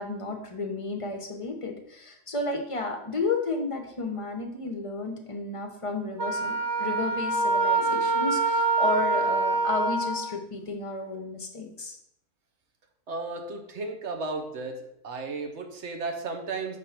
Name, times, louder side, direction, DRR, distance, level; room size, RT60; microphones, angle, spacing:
voice 1, 0.0-12.0, left 3 dB, 30° left, 3 dB, 0.6 m, -32 dB
Wind instrument woodwind instrument, 6.2-10.3, right 3 dB, 30° right, 0.5 m, -25 dB
voice 2, 13.1-14.8 15.0-16.8, right 3 dB, 60° right, 5 dB, 1.0 m, -34 dB
5.1 x 3.7 x 5.7 m, 0.75 s
omnidirectional pair, 1.5 m